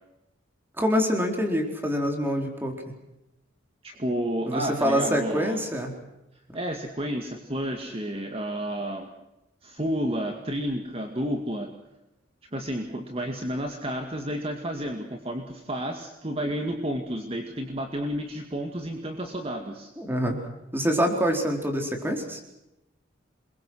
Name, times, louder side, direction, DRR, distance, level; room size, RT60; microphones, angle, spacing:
voice 1, 0.8-2.8 4.5-5.9 20.0-20.4 20.7-22.4, equal, 10° right, 3 dB, 4.2 m, -25 dB
voice 2, 3.8-5.6 6.5-9.1 9.6-11.7 12.5-19.9, equal, 30° right, 4 dB, 2.2 m, -31 dB
27.5 x 22.5 x 6.4 m, 0.91 s
head